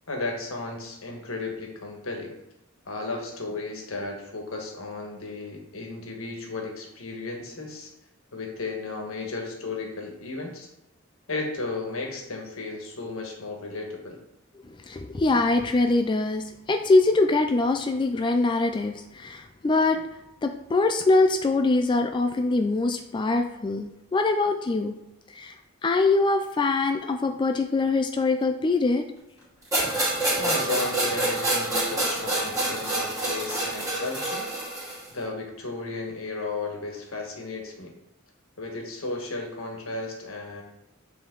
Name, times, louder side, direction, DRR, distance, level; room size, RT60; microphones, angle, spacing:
voice 1, 0.1-2.3 2.9-7.9 8.3-10.7 11.3-14.2 30.4-34.5 35.1-37.9 38.6-40.6, left 3 dB, 80° left, 1 dB, 1.4 m, -34 dB
voice 2, 14.6-20.0 20.4-25.0 25.3-25.6 25.8-29.1, left 3 dB, 25° left, 6 dB, 0.3 m, -23 dB
sound 1, 29.7-35.1, right 2 dB, 15° right, 2.3 m, -27 dB
7.6 x 3.5 x 3.9 m, 0.88 s
head